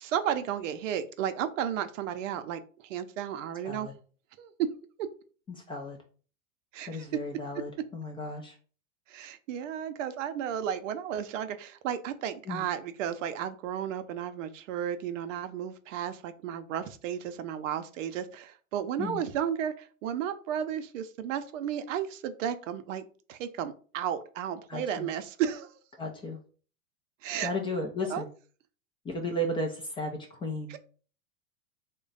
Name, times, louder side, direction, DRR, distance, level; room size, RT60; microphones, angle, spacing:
voice 1, 0.0-3.9 4.4-4.7 6.7-7.1 9.1-25.7 27.2-27.5 28.1-28.2 30.7-30.8, right 9 dB, 65° right, 10 dB, 0.6 m, -33 dB
voice 2, 5.5-6.0 6.9-8.6 12.5-12.6 19.0-19.2 24.7-25.1 26.0-26.4 27.4-28.3 29.0-30.8, left 1 dB, 15° left, 2 dB, 0.3 m, -34 dB
3.1 x 2.2 x 3.8 m, 0.40 s
hypercardioid pair, 100°, 41 cm